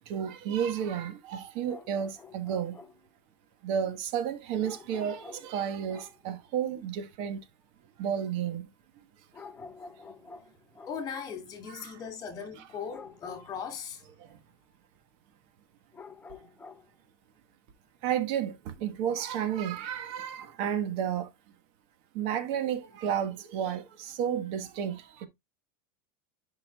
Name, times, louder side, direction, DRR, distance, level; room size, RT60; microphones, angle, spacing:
voice 1, 0.1-2.8 3.6-7.4 8.0-8.6 11.7-11.9 18.0-21.3 22.1-25.3, right 9 dB, 55° right, 1.3 m, -32 dB
sound 1, 1.6-3.1 4.6-6.2 9.3-11.1 12.9-13.5 15.9-16.9, left 5 dB, 15° left, 0.7 m, -49 dB
voice 2, 10.9-14.0, left 6 dB, 30° left, 2.4 m, -39 dB
10.5 x 5.5 x 2.3 m
supercardioid pair, 145°, 12 cm